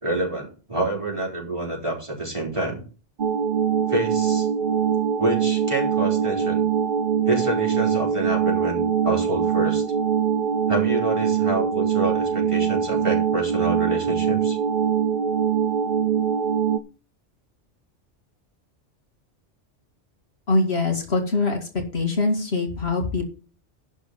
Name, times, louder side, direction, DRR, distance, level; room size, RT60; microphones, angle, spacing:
voice 1, 0.0-2.8 3.9-4.5 5.2-6.6 7.3-9.8 10.7-14.6, right 2 dB, 25° right, -2 dB, 3.9 m, -27 dB
sound 1, 3.2-16.8, right 8 dB, 50° right, 0.8 m, -23 dB
voice 2, 20.5-23.2, left 3 dB, 60° left, 3 dB, 2.3 m, -23 dB
11.5 x 4.4 x 7.6 m, 0.36 s
omnidirectional pair, 1.2 m